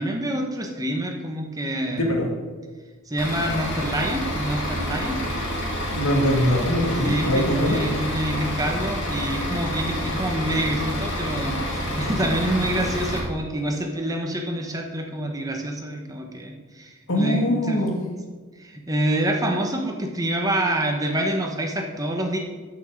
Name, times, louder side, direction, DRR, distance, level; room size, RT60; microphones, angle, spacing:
voice 1, 0.0-2.2 3.1-5.2 7.0-17.8 18.6-22.4, right 1 dB, 15° right, 2 dB, 1.1 m, -27 dB
voice 2, 1.9-2.3 5.9-7.8 17.1-17.9, equal, 75° left, 0 dB, 2.2 m, -22 dB
Bus / Idling, 3.2-13.2, equal, 55° left, 2.8 m, -28 dB
11.0 x 6.1 x 6.4 m, 1.4 s
head